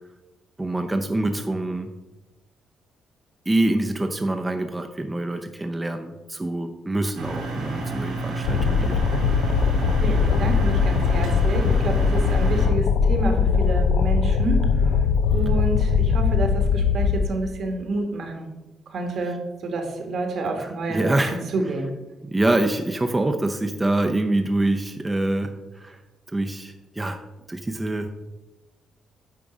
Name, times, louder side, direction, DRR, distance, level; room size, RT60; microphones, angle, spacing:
voice 1, 0.6-1.9 3.5-9.0 20.6-21.4 22.3-26.0 26.3-27.2 27.5-28.1, right 2 dB, 15° right, 5 dB, 0.5 m, -25 dB
sound 1, 7.1-12.7, right 3 dB, 85° right, 2.2 m, -30 dB
sound 2, 8.4-17.3, left 6 dB, 85° left, 0.4 m, -20 dB
voice 2, 9.8-18.5 18.9-21.2 21.5-21.9, right 2 dB, 60° right, 4 dB, 1.4 m, -29 dB
9.0 x 3.7 x 4.9 m, 1.1 s
cardioid pair, 90°, 0 cm